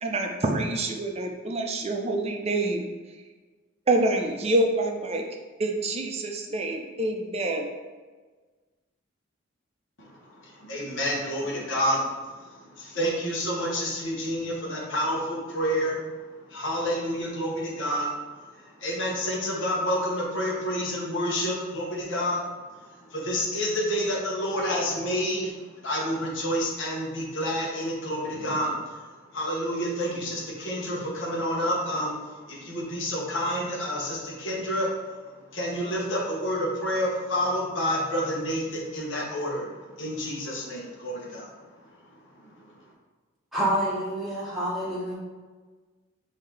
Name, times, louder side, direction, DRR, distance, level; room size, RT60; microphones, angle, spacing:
voice 1, 0.0-2.8 3.9-5.2 5.6-7.7, right 2 dB, 30° right, 2 dB, 0.5 m, -26 dB
voice 2, 10.0-25.5 25.8-42.8, equal, 65° left, -4 dB, 1.1 m, -29 dB
voice 3, 43.5-45.1, right 1 dB, ahead, -8 dB, 0.9 m, -27 dB
5.5 x 2.8 x 3.2 m, 1.4 s
head